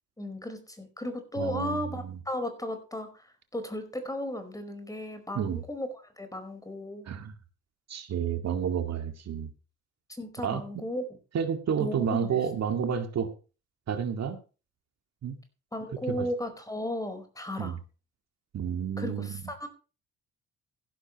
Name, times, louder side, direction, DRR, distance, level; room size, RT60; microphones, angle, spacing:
voice 1, 0.2-7.1 10.1-11.0 11.8-12.4 15.7-17.7 19.0-19.7, left 1 dB, 10° left, 8 dB, 4.9 m, -35 dB
voice 2, 1.4-1.8 5.3-5.6 7.1-7.3 7.9-9.5 10.4-10.6 11.3-13.3 13.9-14.4 15.2-15.4 16.1-16.3 17.6-17.8 18.5-19.4, right 7 dB, 60° right, 7 dB, 2.2 m, -30 dB
15.5 x 12.0 x 3.1 m, 0.34 s
cardioid pair, 90°, 30 cm